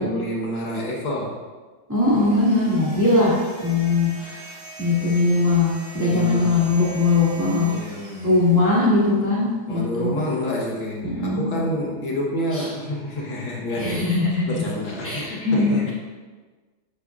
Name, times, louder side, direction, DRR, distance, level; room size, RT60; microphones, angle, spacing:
voice 1, 0.0-1.4 6.0-6.6 7.7-8.3 9.7-15.9, left 1 dB, 65° left, -3 dB, 1.9 m, -28 dB
voice 2, 1.9-3.4 3.6-7.7 8.2-10.1 11.0-11.6 12.5-12.7 13.8-14.6 15.0-15.9, left 3 dB, 10° right, -8 dB, 2.2 m, -20 dB
sound 1, 2.0-9.3, right 1 dB, 70° right, 3.2 m, -42 dB
10.0 x 8.4 x 2.4 m, 1.4 s
omnidirectional pair, 2.4 m